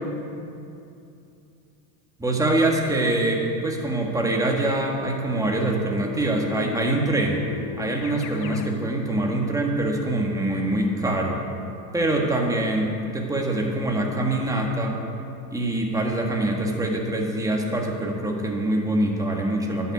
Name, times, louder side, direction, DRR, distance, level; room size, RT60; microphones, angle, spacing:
voice 1, 2.2-7.4 7.8-11.4 11.9-15.0 15.5-19.9, right 1 dB, 5° right, 0 dB, 1.6 m, -24 dB
Keyboard (musical), 6.0-8.8, left 12 dB, 40° left, 0.5 m, -38 dB
11.5 x 7.0 x 8.3 m, 2.7 s
supercardioid pair, 120°, 49 cm